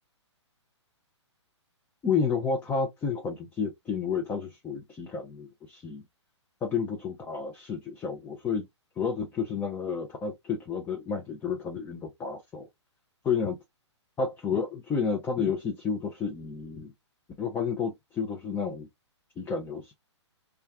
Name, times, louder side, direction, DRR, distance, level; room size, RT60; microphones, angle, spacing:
voice 1, 2.0-6.0 6.6-8.7 9.0-12.7 13.2-13.6 14.2-16.9 17.4-18.9 19.4-19.9, left 5 dB, 10° left, 0.5 m, -31 dB
2.3 x 2.2 x 3.5 m
figure-of-eight pair, 120°, 15 cm